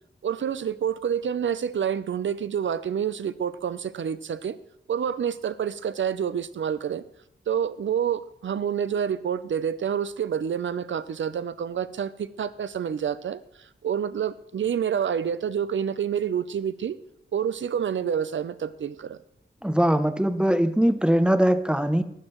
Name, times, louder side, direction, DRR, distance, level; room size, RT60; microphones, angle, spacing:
voice 1, 0.2-4.6 4.9-7.0 7.5-17.0 17.3-19.2, right 8 dB, 75° right, 14 dB, 0.6 m, -28 dB
voice 2, 19.6-22.0, equal, 5° right, 11 dB, 0.6 m, -21 dB
15.5 x 11.5 x 3.1 m, 0.76 s
wide cardioid pair, 115°, 20 cm